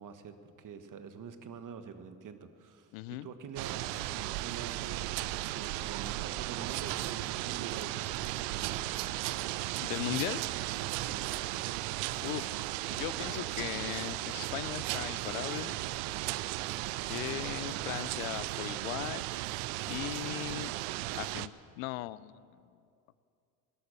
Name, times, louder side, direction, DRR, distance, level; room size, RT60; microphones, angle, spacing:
voice 1, 0.0-9.8 11.0-11.3, right 6 dB, 50° right, 10 dB, 1.4 m, -47 dB
voice 2, 2.9-3.3 9.8-10.4 12.2-15.9 17.0-19.3 19.9-20.7 21.1-22.5, left 17 dB, 90° left, 19 dB, 0.5 m, -38 dB
Thunderstorm and rain in the countryside, 3.6-21.5, right 17 dB, 80° right, 0.6 m, -36 dB
17.0 x 12.5 x 6.8 m, 2.4 s
hypercardioid pair, 65°, 41 cm